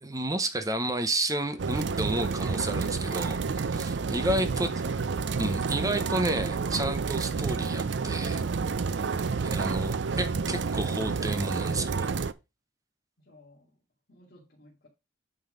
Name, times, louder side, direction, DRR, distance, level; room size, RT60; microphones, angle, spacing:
voice 1, 0.0-4.7 5.4-8.4 9.4-12.1, right 1 dB, 15° right, 0.8 m, -31 dB
sound 1, 1.6-12.3, right 5 dB, 60° right, 0.5 m, -29 dB
voice 2, 9.1-9.9 13.2-13.8 14.1-14.9, left 1 dB, 50° left, 2.3 m, -55 dB
9.1 x 3.9 x 5.1 m
head